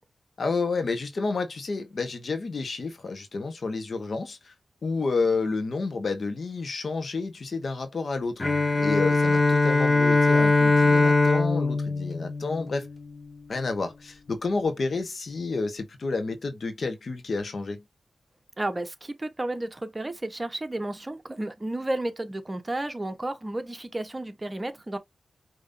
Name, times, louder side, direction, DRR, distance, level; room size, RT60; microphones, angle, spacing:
voice 1, 0.4-4.5 4.8-8.4 8.8-12.9 13.5-17.8, left 3 dB, 65° left, 1.3 m, -30 dB
Bowed string instrument, 8.4-13.1, left 3 dB, 40° left, 1.0 m, -21 dB
voice 2, 18.6-25.0, right 1 dB, 30° right, 1.1 m, -32 dB
5.3 x 3.0 x 2.7 m
cardioid pair, 50°, 0 cm